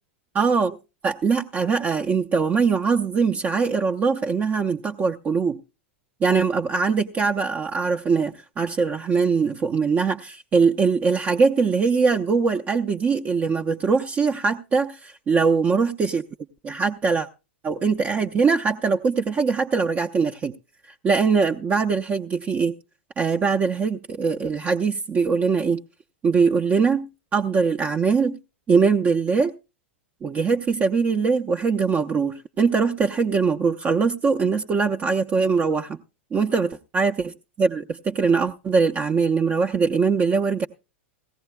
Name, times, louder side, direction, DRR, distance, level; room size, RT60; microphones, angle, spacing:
voice 1, 0.3-0.8 1.0-5.6 6.2-16.2 16.6-17.3 17.6-20.5 21.0-22.7 23.2-25.8 26.2-28.4 28.7-29.5 30.2-36.0 36.3-40.7, right 5 dB, 25° right, 0.5 m, -22 dB
17.5 x 15.0 x 2.2 m
figure-of-eight pair, 95°, 7 cm